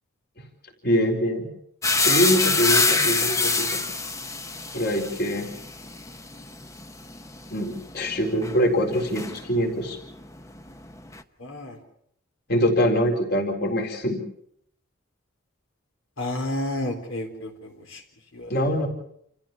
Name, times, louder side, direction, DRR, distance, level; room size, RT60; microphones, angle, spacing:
voice 1, 0.8-1.5 2.0-3.7 4.7-5.5 7.5-10.0 12.5-14.2 18.5-18.9, equal, 50° left, 1 dB, 4.2 m, -24 dB
sound 1, 1.8-9.8 10.1-11.2, left 3 dB, 15° left, 0.9 m, -26 dB
voice 2, 11.4-11.8 16.2-18.0 18.3-18.5, left 1 dB, 75° left, 1 dB, 4.1 m, -31 dB
29.0 x 14.5 x 7.3 m, 0.71 s
head